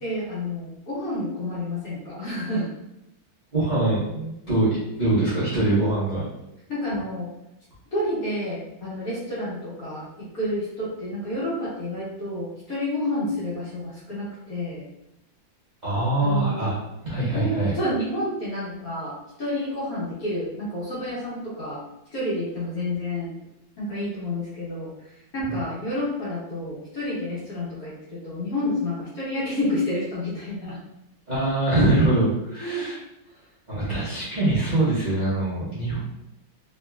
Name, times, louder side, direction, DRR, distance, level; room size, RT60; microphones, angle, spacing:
voice 1, 0.0-2.7 6.7-7.3 7.9-14.8 16.2-16.7 17.2-21.8 22.1-23.3 23.8-24.9 25.3-30.8 32.6-32.9, left 1 dB, 55° left, -8 dB, 1.3 m, -29 dB
voice 2, 3.5-4.7 5.0-6.2 15.8-16.7 17.0-17.7 25.5-25.6 31.3-33.0 33.7-36.0, right 2 dB, 40° right, -11 dB, 0.6 m, -23 dB
3.2 x 2.9 x 2.2 m, 0.85 s
omnidirectional pair, 2.2 m